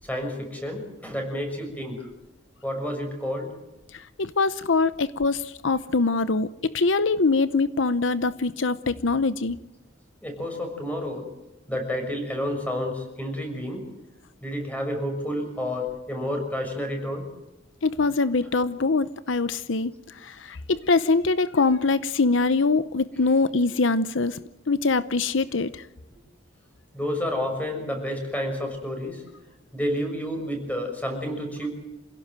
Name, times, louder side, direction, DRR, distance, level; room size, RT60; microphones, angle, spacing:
voice 1, 0.0-2.1 2.6-3.5 10.2-11.3 11.7-13.9 14.4-17.3 26.9-29.2 29.7-31.7, equal, 10° left, 3 dB, 6.1 m, -30 dB
voice 2, 3.9-9.6 17.8-24.4 24.7-25.9, left 3 dB, 75° left, 14 dB, 0.8 m, -23 dB
27.0 x 17.0 x 7.7 m, 1.0 s
head